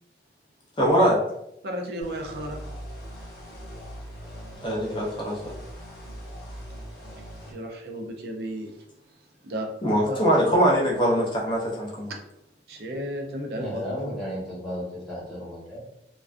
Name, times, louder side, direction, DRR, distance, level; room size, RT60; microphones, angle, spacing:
voice 1, 0.8-1.2 4.6-5.5 9.8-12.1, equal, 25° left, -3 dB, 0.6 m, -22 dB
voice 2, 1.6-2.6 7.5-8.8 9.4-9.7 10.0-10.2 12.7-13.8, equal, 60° right, 2 dB, 0.4 m, -33 dB
sound 1, 2.0-7.5, equal, 60° left, 0.8 m, -41 dB
voice 3, 13.6-15.8, equal, ahead, -9 dB, 0.9 m, -33 dB
2.4 x 2.2 x 2.4 m, 0.80 s
head